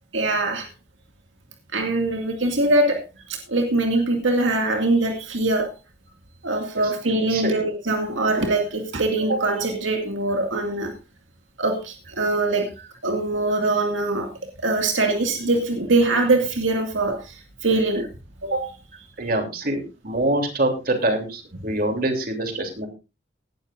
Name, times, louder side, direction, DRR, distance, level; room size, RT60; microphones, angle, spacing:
voice 1, 0.1-0.7 1.7-3.0 3.5-5.7 6.4-10.9 11.6-12.7 13.0-14.3 14.6-18.1 18.5-18.7, right 2 dB, 80° right, 2.2 m, -22 dB
voice 2, 19.2-22.9, right 1 dB, 50° right, 3.2 m, -25 dB
18.0 x 12.0 x 2.6 m
head